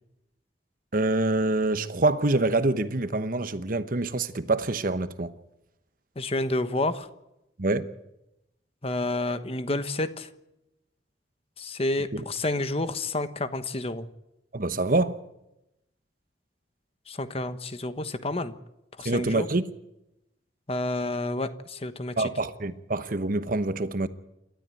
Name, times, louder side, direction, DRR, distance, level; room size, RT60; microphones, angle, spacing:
voice 1, 0.9-5.3 7.6-7.9 12.1-12.2 14.5-15.2 19.0-19.7 22.2-24.1, right 2 dB, 50° right, 1.1 m, -26 dB
voice 2, 6.2-7.1 8.8-10.3 11.6-14.1 17.1-18.5 19.0-19.5 20.7-22.3, left 2 dB, 35° left, 1.2 m, -29 dB
28.5 x 13.0 x 9.1 m
head